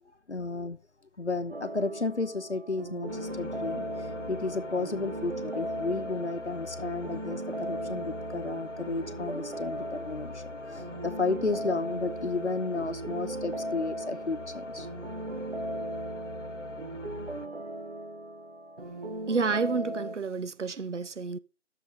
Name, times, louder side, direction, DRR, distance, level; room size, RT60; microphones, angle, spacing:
voice 1, 0.3-0.8 1.2-14.9, left 3 dB, 70° left, 0.9 m, -33 dB
sound 1, 1.5-20.2, right 1 dB, 55° right, 1.0 m, -37 dB
sound 2, 3.1-17.5, left 3 dB, 85° left, 1.0 m, -44 dB
voice 2, 19.3-21.4, right 4 dB, 80° right, 0.6 m, -30 dB
8.1 x 6.9 x 4.7 m
figure-of-eight pair, 175°, 36 cm